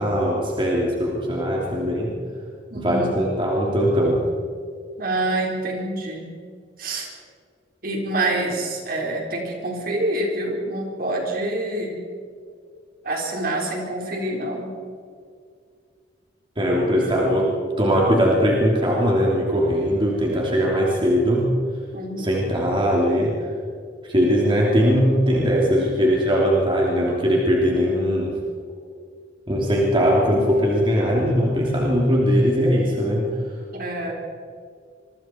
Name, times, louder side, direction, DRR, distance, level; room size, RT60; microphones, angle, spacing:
voice 1, 0.0-2.1 2.7-4.2 16.6-17.5 17.8-21.5 22.2-23.4 24.0-28.3 29.5-33.3, equal, 30° right, -3 dB, 3.2 m, -20 dB
voice 2, 2.7-3.1 5.0-6.3 6.8-7.1 7.8-12.0 13.0-14.7 21.9-22.3 33.7-34.1, right 1 dB, 55° right, 0 dB, 4.6 m, -26 dB
26.5 x 24.0 x 4.6 m, 2.2 s
head